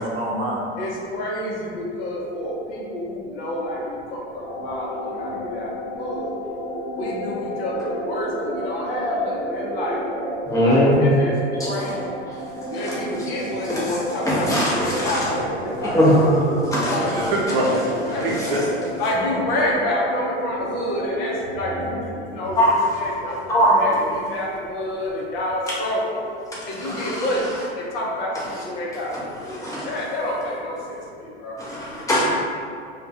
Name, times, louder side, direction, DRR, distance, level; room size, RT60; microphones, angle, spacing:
voice 1, 0.0-0.6 17.0-18.6, right 1 dB, 60° right, -3 dB, 0.6 m, -24 dB
voice 2, 0.8-6.4 6.9-10.1 10.5-11.3 11.6-12.0 12.7-17.4 17.8-18.3 19.0-26.2 26.7-29.3 29.8-31.6, left 1 dB, 60° left, -4 dB, 0.7 m, -28 dB
sound 1, 4.4-22.1, equal, 85° left, 0.9 m, -31 dB
voice 3, 10.5-11.0 11.6-11.7 12.6-13.0 13.7-13.9 14.2-15.2 15.8-16.1 16.7-17.0 18.3-18.6 22.6-22.8 23.5-23.8 26.8-27.3 29.5-29.9 31.6-32.3, equal, 10° left, -8 dB, 0.7 m, -21 dB
2.2 x 2.2 x 2.6 m, 2.3 s
figure-of-eight pair, 80°, 34 cm